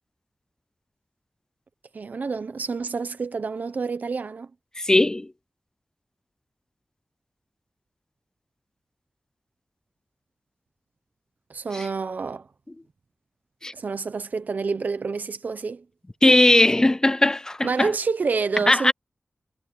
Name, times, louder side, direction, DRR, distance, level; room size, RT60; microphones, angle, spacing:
voice 1, 1.9-4.5 11.5-12.5 13.7-15.8 17.6-18.9, right 4 dB, 70° right, 0.8 m, -28 dB
voice 2, 4.8-5.3 11.7-11.9 13.6-13.7 16.2-17.9 18.7-18.9, left 1 dB, 20° left, 0.5 m, -19 dB
wide cardioid pair, 80°, 3 cm